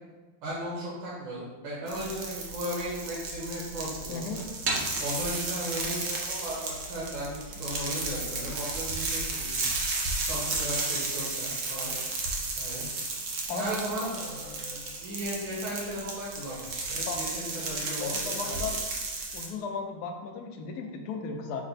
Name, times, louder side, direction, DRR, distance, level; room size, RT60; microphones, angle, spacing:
voice 1, 0.4-4.3 5.0-9.6 10.2-11.9 12.6-12.9 13.5-18.7, equal, 70° right, -6 dB, 1.8 m, -36 dB
sound 1, 1.9-19.5, right 3 dB, 85° right, 0.6 m, -33 dB
voice 2, 4.1-4.4 11.9-12.0 13.5-13.8 17.1-17.2 18.0-18.7 19.3-21.6, left 5 dB, 80° left, 3 dB, 0.9 m, -35 dB
5.9 x 2.1 x 4.0 m, 1.3 s
omnidirectional pair, 2.2 m